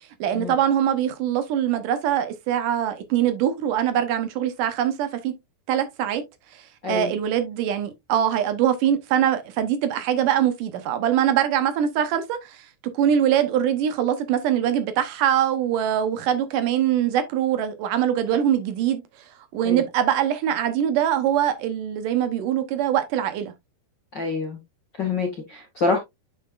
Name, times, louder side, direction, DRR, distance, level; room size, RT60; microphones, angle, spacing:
voice 1, 0.2-5.4 5.7-6.2 6.9-19.0 19.5-23.5, right 10 dB, 75° right, 2.0 m, -23 dB
voice 2, 24.1-24.6 25.0-26.0, left 4 dB, 60° left, 1.1 m, -26 dB
9.2 x 5.6 x 2.4 m
omnidirectional pair, 4.8 m